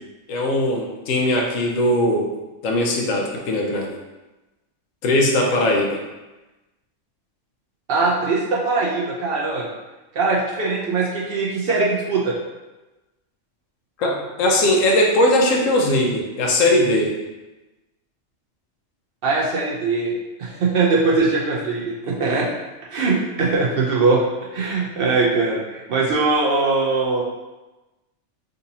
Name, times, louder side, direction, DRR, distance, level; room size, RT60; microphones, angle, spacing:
voice 1, 0.3-2.3 2.6-4.0 5.0-6.0 14.0-17.1, left 1 dB, 85° left, 0 dB, 1.0 m, -19 dB
voice 2, 7.9-9.7 10.1-12.4 19.2-20.1 20.4-22.5 22.9-24.2 24.5-27.2, right 3 dB, 60° right, -4 dB, 0.7 m, -21 dB
3.8 x 2.6 x 2.7 m, 1.1 s
omnidirectional pair, 1.3 m